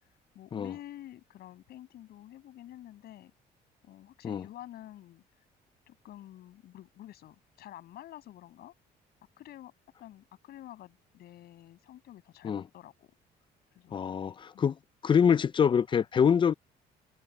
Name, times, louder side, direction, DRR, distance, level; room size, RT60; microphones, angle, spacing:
voice 1, 0.0-3.3 3.8-5.2 5.9-8.7 9.4-9.7 10.0-13.1 13.7-14.1 14.5-14.7, left 13 dB, 70° left, 7.0 m, -49 dB
voice 2, 13.9-14.8 15.0-16.5, left 7 dB, 30° left, 0.4 m, -25 dB
cardioid pair, 110°, 17 cm